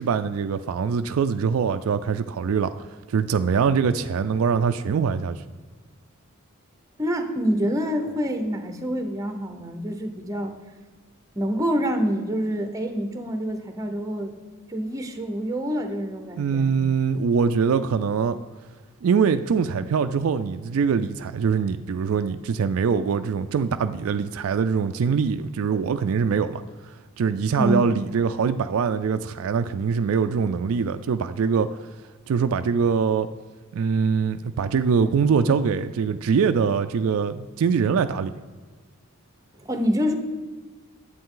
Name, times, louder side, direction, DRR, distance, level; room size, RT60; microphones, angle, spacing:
voice 1, 0.0-2.7 3.1-5.4 16.4-18.4 19.0-26.6 27.2-31.8 32.3-33.3 33.7-38.3, right 6 dB, 70° right, 10 dB, 0.3 m, -23 dB
voice 2, 7.0-10.5 11.3-14.3 14.7-16.8 27.5-28.0 39.6-40.2, equal, 15° right, 6 dB, 0.9 m, -26 dB
10.5 x 8.1 x 3.8 m, 1.4 s
head